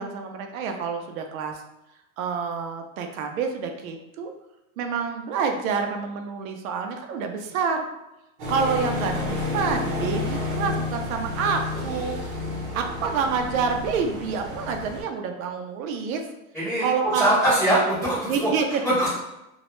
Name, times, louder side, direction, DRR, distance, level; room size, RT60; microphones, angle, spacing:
voice 1, 0.0-1.6 2.2-4.3 4.8-7.8 8.5-12.2 12.7-16.2 16.8-17.3 18.3-18.7, right 5 dB, 75° right, 4 dB, 0.5 m, -27 dB
sound 1, 8.4-15.0, left 3 dB, 40° right, 0.8 m, -30 dB
voice 2, 17.1-18.5 18.8-19.1, right 1 dB, ahead, -16 dB, 0.4 m, -22 dB
2.2 x 2.0 x 2.9 m, 0.91 s
supercardioid pair, 155°, 42 cm